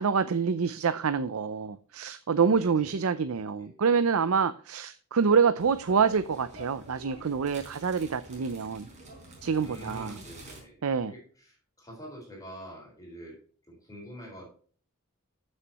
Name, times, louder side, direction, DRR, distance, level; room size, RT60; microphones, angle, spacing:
voice 1, 0.0-8.9 9.4-10.1 10.8-11.1, right 6 dB, 80° right, 13 dB, 0.5 m, -26 dB
voice 2, 2.5-3.1 3.6-3.8 9.6-10.8 11.0-13.4 13.7-14.5, equal, 15° left, -1 dB, 4.1 m, -46 dB
sound 1, 5.6-10.6, right 1 dB, 35° right, 4.5 m, -47 dB
14.0 x 6.5 x 3.0 m, 0.44 s
head